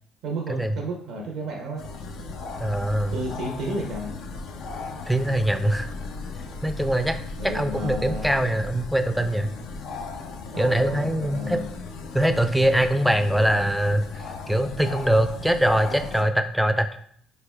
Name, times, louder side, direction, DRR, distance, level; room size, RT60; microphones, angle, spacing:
voice 1, 0.2-1.9 3.1-4.1 7.4-8.3 10.5-11.7, right 1 dB, 80° right, -1 dB, 0.6 m, -32 dB
sound 1, 1.8-16.2, left 3 dB, 75° left, 0.4 m, -36 dB
voice 2, 2.6-3.1 5.1-5.9 6.6-7.2 7.4-9.5 10.6-11.6 12.1-17.0, right 1 dB, ahead, 9 dB, 0.4 m, -23 dB
3.8 x 3.2 x 2.3 m, 0.63 s
supercardioid pair, 65°, 0 cm